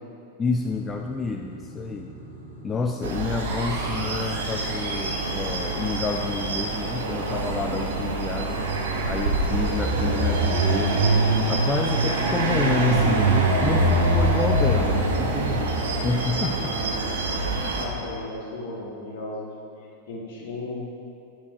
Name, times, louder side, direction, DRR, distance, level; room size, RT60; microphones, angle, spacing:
voice 1, 0.4-2.1 2.6-8.6 9.1-11.0 11.5-16.8 17.6-18.1, left 4 dB, 20° left, 3 dB, 0.3 m, -29 dB
sound 1, 0.5-10.3, right 2 dB, 80° right, 2.0 m, -44 dB
sound 2, 3.0-5.7, right 2 dB, 40° right, 2.0 m, -38 dB
sound 3, 3.0-17.9, right 2 dB, 65° right, 0.9 m, -24 dB
voice 2, 17.7-20.9, left 2 dB, 50° left, -3 dB, 1.5 m, -35 dB
9.2 x 4.7 x 4.6 m, 2.6 s
figure-of-eight pair, 90°, 0 cm